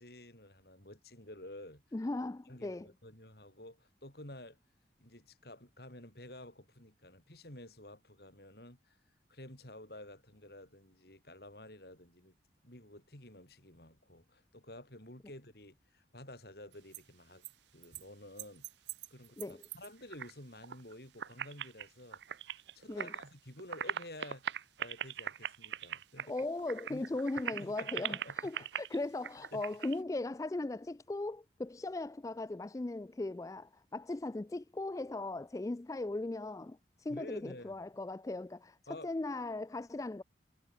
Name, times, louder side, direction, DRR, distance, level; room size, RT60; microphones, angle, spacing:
voice 1, 0.0-1.8 2.5-4.6 5.0-9.0 9.3-12.3 12.6-17.4 17.7-18.6 19.1-26.3 26.9-27.1 27.4-28.7 29.5-29.6 37.1-37.8 38.9-39.1, left 1 dB, 55° left, 6.3 m, -51 dB
voice 2, 1.9-2.9 19.4-19.6 22.9-23.1 26.3-40.2, left 2 dB, 20° left, 0.3 m, -38 dB
sound 1, 16.7-17.0 17.4-17.5 17.8-18.0 18.4-20.3 20.6-20.9 21.2-23.3 23.6-30.0, right 9 dB, 70° right, 0.5 m, -41 dB
head